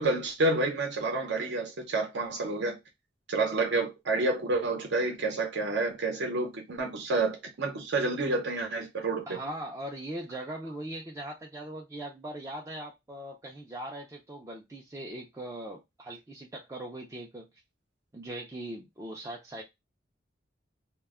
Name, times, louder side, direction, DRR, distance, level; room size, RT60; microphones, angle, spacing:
voice 1, 0.0-2.8 3.3-9.4, right 2 dB, 65° right, 0.7 m, -29 dB
voice 2, 9.3-17.5 18.1-19.6, right 1 dB, 15° right, 0.4 m, -40 dB
2.2 x 2.1 x 3.4 m
head